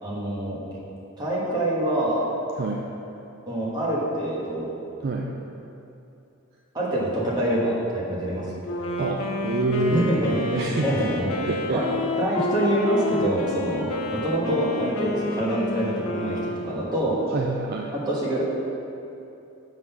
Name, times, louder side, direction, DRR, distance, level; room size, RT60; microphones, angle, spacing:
voice 1, 0.0-0.6 1.2-2.3 3.5-4.7 6.7-8.6 9.9-11.9 12.2-17.2 18.1-18.4, right 1 dB, 20° right, -7 dB, 1.3 m, -25 dB
Wind instrument woodwind instrument, 8.6-17.3, left 2 dB, 85° left, 0.6 m, -30 dB
voice 2, 9.0-10.1 10.5-10.9 11.5-12.0 17.3-17.9, right 2 dB, 45° right, 0 dB, 0.3 m, -27 dB
6.2 x 3.8 x 5.8 m, 2.8 s
head